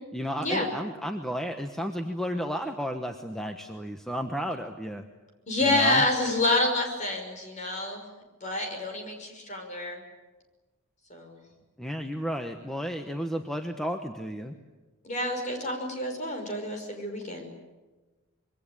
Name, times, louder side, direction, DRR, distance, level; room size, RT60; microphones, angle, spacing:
voice 1, 0.1-5.1 5.6-6.0 11.8-14.5, equal, ahead, 5 dB, 1.1 m, -33 dB
voice 2, 5.5-8.0 8.4-10.0 11.1-11.4 15.0-17.5, left 2 dB, 35° left, 3 dB, 5.8 m, -28 dB
26.0 x 23.0 x 8.9 m, 1.2 s
head